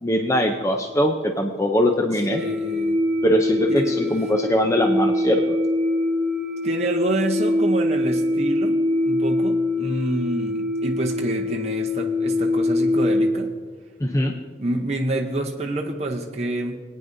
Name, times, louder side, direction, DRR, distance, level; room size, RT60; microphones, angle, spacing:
voice 1, 0.0-2.4 3.2-5.6 14.0-14.4, equal, 15° left, 3 dB, 0.5 m, -21 dB
voice 2, 2.1-3.0 3.7-4.0 6.6-13.5 14.6-16.8, right 2 dB, 35° right, 0 dB, 0.7 m, -27 dB
sound 1, 2.3-13.3, left 1 dB, 60° right, 1.1 m, -23 dB
21.0 x 9.4 x 2.6 m, 1.5 s
head